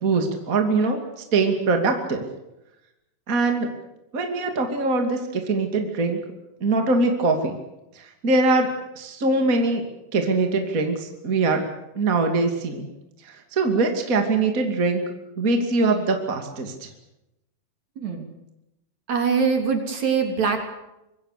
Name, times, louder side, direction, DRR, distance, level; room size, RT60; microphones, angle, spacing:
voice 1, 0.0-1.0 1.3-2.2 3.3-3.7 4.1-6.2 6.6-7.6 8.0-8.7 9.0-9.8 10.1-11.6 11.9-12.9 13.2-15.0 15.4-16.9, right 3 dB, 25° right, 4 dB, 2.7 m, -22 dB
voice 2, 18.0-18.3 19.1-20.7, right 5 dB, 55° right, 4 dB, 4.4 m, -23 dB
25.5 x 23.5 x 6.9 m, 0.90 s
omnidirectional pair, 3.9 m